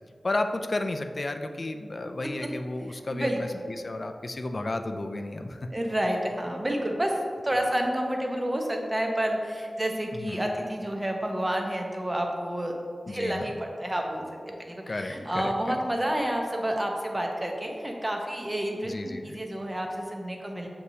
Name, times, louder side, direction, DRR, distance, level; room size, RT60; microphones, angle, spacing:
voice 1, 0.2-5.7 10.1-10.4 13.1-13.5 14.9-15.8 18.8-19.4, left 2 dB, 55° left, 6 dB, 0.3 m, -33 dB
voice 2, 3.1-3.6 5.7-7.1 7.4-12.7 13.1-20.7, right 1 dB, 25° right, 1 dB, 0.7 m, -29 dB
6.4 x 2.8 x 2.7 m, 2.2 s
cardioid pair, 45°, 0 cm